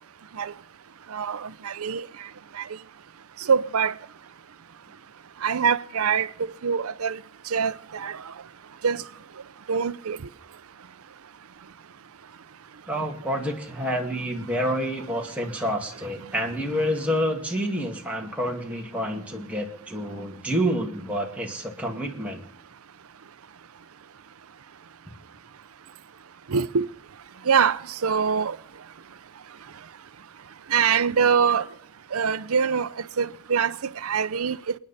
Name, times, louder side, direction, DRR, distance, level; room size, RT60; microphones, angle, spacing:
voice 1, 1.1-2.1 2.5-2.7 3.4-3.9 5.4-7.2 7.5-8.3 8.8-9.0 9.7-10.2 26.5-26.9 27.4-28.6 30.7-31.7 32.1-32.9 33.2-34.7, right 6 dB, 85° right, 0.6 m, -24 dB
voice 2, 12.9-22.4, equal, 5° right, 2.1 m, -28 dB
29.0 x 9.9 x 4.1 m
head